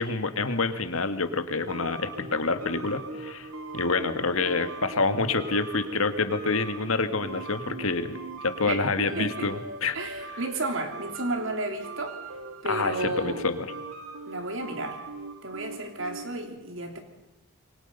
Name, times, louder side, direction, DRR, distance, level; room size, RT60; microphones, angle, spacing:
voice 1, 0.0-10.0 12.6-13.7, left 3 dB, 80° left, 9 dB, 1.8 m, -27 dB
sound 1, 1.7-16.4, right 3 dB, 90° right, 2.3 m, -41 dB
voice 2, 8.7-9.5 9.9-12.2 12.6-13.5 14.3-15.0 15.4-17.0, right 2 dB, 65° right, 5 dB, 3.4 m, -32 dB
27.0 x 23.5 x 5.6 m, 0.88 s
head